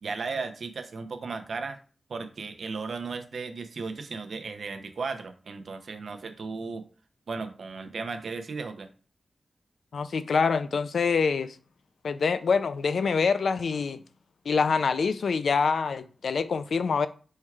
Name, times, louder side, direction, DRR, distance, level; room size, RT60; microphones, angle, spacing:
voice 1, 0.0-1.8 2.1-6.8 7.3-8.9, right 4 dB, 75° right, 0.5 m, -35 dB
voice 2, 9.9-11.5 12.0-14.0 14.5-17.1, left 5 dB, 80° left, 0.3 m, -25 dB
4.4 x 2.3 x 4.6 m
wide cardioid pair, 105°, 0 cm